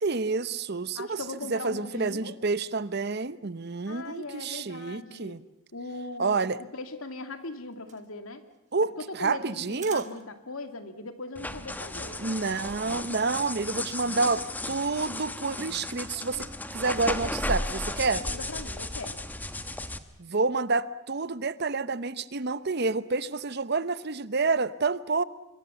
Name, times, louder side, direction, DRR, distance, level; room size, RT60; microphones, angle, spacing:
voice 1, 0.0-1.2 1.5-5.4 6.2-6.6 8.7-10.1 12.2-16.5 16.7-18.3 20.2-25.2, right 4 dB, 50° right, 16 dB, 0.8 m, -28 dB
voice 2, 1.0-2.3 3.9-5.4 5.7-8.4 9.0-12.2 17.8-19.2, left 3 dB, 90° left, 8 dB, 2.3 m, -40 dB
sound 1, 7.3-10.6 10.9-11.0 11.2-11.4 11.7-12.8, right 9 dB, 35° right, 1.5 m, -50 dB
sound 2, 11.4-20.0, left 1 dB, 10° left, 1.0 m, -35 dB
25.0 x 22.5 x 7.0 m, 0.95 s
head